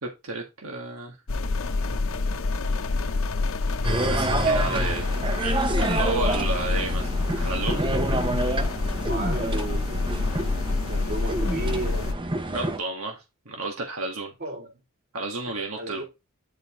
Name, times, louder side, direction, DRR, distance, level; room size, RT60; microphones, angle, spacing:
voice 1, 0.0-1.2 4.0-5.1 5.3-7.1 7.4-7.8 12.5-14.3 15.1-16.0, right 2 dB, 85° right, 1.7 m, -32 dB
sound 1, 1.3-12.1, left 3 dB, 65° left, 0.8 m, -27 dB
sound 2, 3.8-12.8, right 2 dB, 25° right, 0.8 m, -28 dB
voice 2, 9.1-10.0 10.9-12.1 14.4-14.7 15.8-16.0, right 2 dB, 50° right, 3.2 m, -33 dB
9.5 x 4.8 x 3.7 m
head